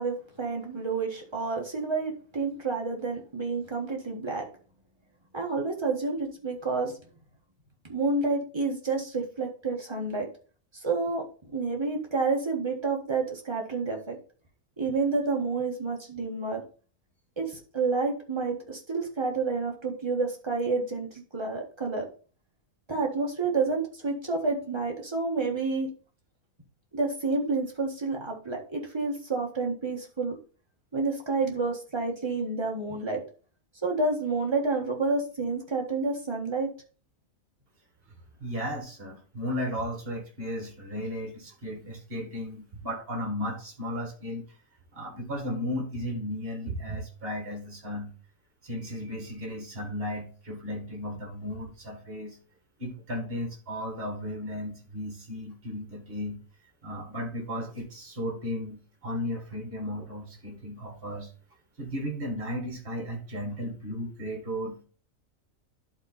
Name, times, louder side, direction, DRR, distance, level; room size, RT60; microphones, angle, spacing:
voice 1, 0.0-4.4 5.3-7.0 7.9-10.3 10.7-11.2 11.5-14.2 14.8-16.6 17.4-22.0 22.9-25.9 26.9-30.3 30.9-33.2 33.8-36.7, right 3 dB, 20° right, 0 dB, 1.5 m, -29 dB
voice 2, 38.4-44.5 44.9-48.2 48.6-52.4 52.8-56.4 56.8-61.3 61.8-64.8, equal, 45° right, 3 dB, 2.0 m, -35 dB
11.0 x 3.8 x 4.0 m, 0.39 s
omnidirectional pair, 1.4 m